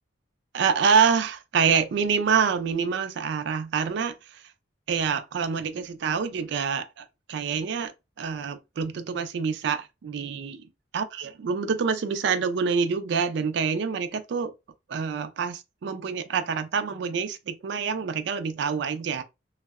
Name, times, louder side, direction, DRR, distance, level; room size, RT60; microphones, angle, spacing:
voice 1, 0.5-4.4 4.9-7.9 8.2-10.7 10.9-14.5 14.9-19.2, right 6 dB, 60° right, 0.3 m, -26 dB
2.6 x 2.0 x 2.3 m
head